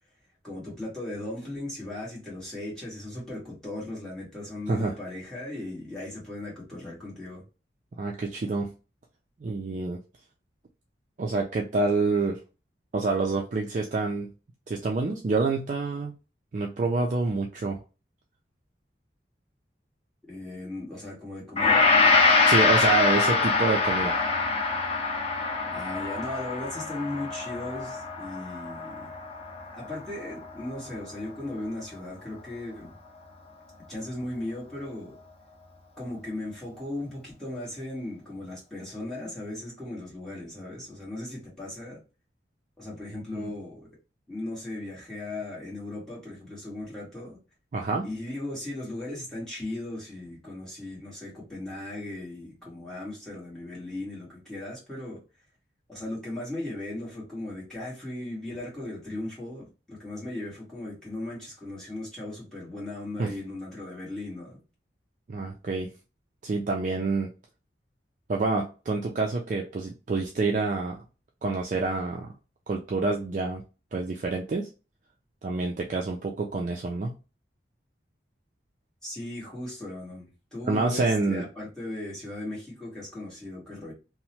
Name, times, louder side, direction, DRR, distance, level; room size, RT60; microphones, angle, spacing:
voice 1, 0.4-7.4 20.3-22.0 25.7-29.1 29.7-32.9 33.9-35.2 36.0-42.0 42.8-43.9 44.3-47.4 48.0-55.2 55.9-64.6 79.0-83.9, left 1 dB, 5° left, 1.3 m, -37 dB
voice 2, 8.0-8.7 9.4-10.0 11.2-12.4 12.9-14.3 14.7-16.1 16.5-17.8 22.5-24.2 43.3-43.5 47.7-48.1 63.2-63.3 65.3-65.9 66.4-67.3 68.3-71.0 71.4-72.3 72.7-73.6 73.9-74.7 75.4-77.1 80.7-81.4, right 3 dB, 40° right, 0.3 m, -27 dB
Gong, 21.6-30.0 30.3-30.5, left 4 dB, 30° left, 0.5 m, -24 dB
2.8 x 2.1 x 2.8 m
head